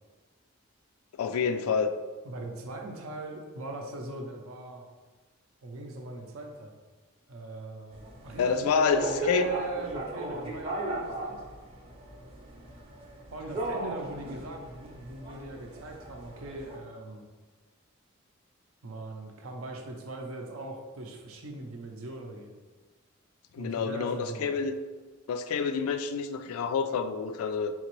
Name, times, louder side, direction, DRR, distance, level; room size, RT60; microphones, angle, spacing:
voice 1, 1.2-1.9 8.4-9.5 23.5-24.8 25.3-27.7, left 5 dB, 85° left, 11 dB, 0.3 m, -28 dB
voice 2, 2.2-4.9 5.6-6.8 7.3-11.4 13.3-17.2 18.8-22.5 23.6-24.5, right 2 dB, 80° right, 3 dB, 0.6 m, -40 dB
sound 1, 7.9-16.8, right 2 dB, 25° right, 0.6 m, -38 dB
3.9 x 2.9 x 3.0 m, 1.3 s
head